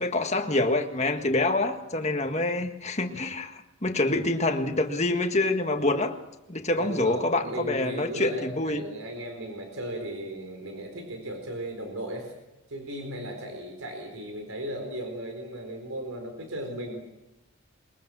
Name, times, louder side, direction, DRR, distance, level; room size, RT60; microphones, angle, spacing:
voice 1, 0.0-6.2 6.5-8.8, left 2 dB, 30° left, 5 dB, 1.7 m, -26 dB
voice 2, 6.8-12.3 12.7-17.0, right 1 dB, 80° right, 3 dB, 4.2 m, -36 dB
22.5 x 21.5 x 6.3 m, 1.0 s
head